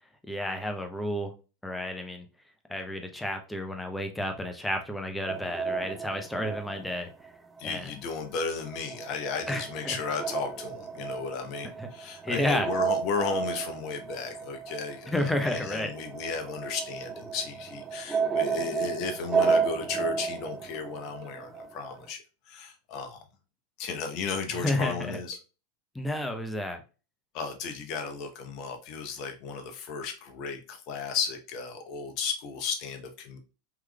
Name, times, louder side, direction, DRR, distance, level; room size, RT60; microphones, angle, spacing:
voice 1, 0.3-1.3 1.6-2.3 2.7-7.1 7.6-7.9 9.5-9.9 11.8-11.9 12.2-12.7 15.1-15.9 24.5-25.2 25.9-26.8, left 1 dB, 5° left, 5 dB, 0.7 m, -31 dB
sound 1, 5.3-7.8 8.1-22.0, right 5 dB, 20° right, 0.3 m, -33 dB
voice 2, 7.6-22.2 22.5-23.2 23.8-25.4 27.3-33.4, left 5 dB, 50° left, 5 dB, 0.8 m, -34 dB
3.6 x 3.0 x 2.2 m, 0.33 s
hypercardioid pair, 90°, 0 cm